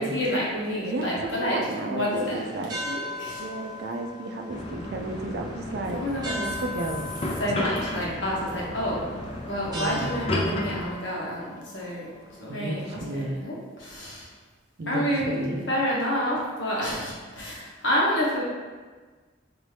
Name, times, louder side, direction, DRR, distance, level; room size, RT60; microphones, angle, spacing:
voice 1, 0.0-2.4 2.9-3.4 5.9-6.5 7.4-9.1 9.5-12.1 12.4-14.3 14.9-18.4, equal, 70° left, -5 dB, 1.1 m, -29 dB
voice 2, 0.8-2.8 3.4-6.0 6.4-7.1 7.4-7.6 9.7-10.1 12.5-13.4 14.8-15.7, right 2 dB, 55° right, 3 dB, 0.4 m, -32 dB
sound 1, 2.1-13.0, left 1 dB, 20° right, 0.7 m, -40 dB
sound 2, 4.5-10.9, left 1 dB, 30° left, 0.4 m, -33 dB
4.2 x 2.7 x 3.3 m, 1.4 s
head